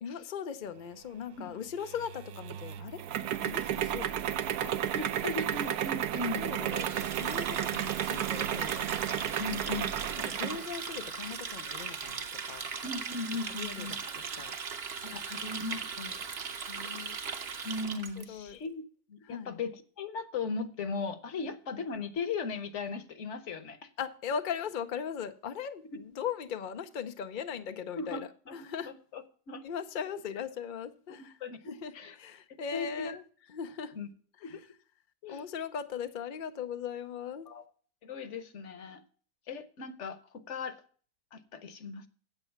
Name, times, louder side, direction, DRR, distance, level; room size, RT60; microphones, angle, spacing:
voice 1, 0.0-3.0 3.4-4.7 6.3-8.9 10.3-12.7 13.6-14.5 16.7-17.2 18.3-18.6 19.3-19.5 24.0-28.9 29.6-31.3 31.7-33.2 33.5-34.0 35.3-37.5, left 7 dB, 75° left, 0.4 m, -39 dB
sound 1, 1.8-10.7, right 10 dB, 70° right, 1.1 m, -33 dB
voice 2, 4.9-6.4 9.4-10.0 12.8-14.0 15.0-16.2 17.6-18.8 19.1-23.9 28.0-29.6 31.2-32.2 32.5-33.2 33.9-34.1 34.4-34.6 35.2-35.5 37.4-37.7 38.0-39.0 39.5-40.8 41.3-42.1, left 4 dB, 50° left, 1.1 m, -38 dB
Water tap faucet, 6.7-18.2, right 5 dB, 45° right, 1.0 m, -39 dB
8.7 x 8.2 x 5.8 m
omnidirectional pair, 1.8 m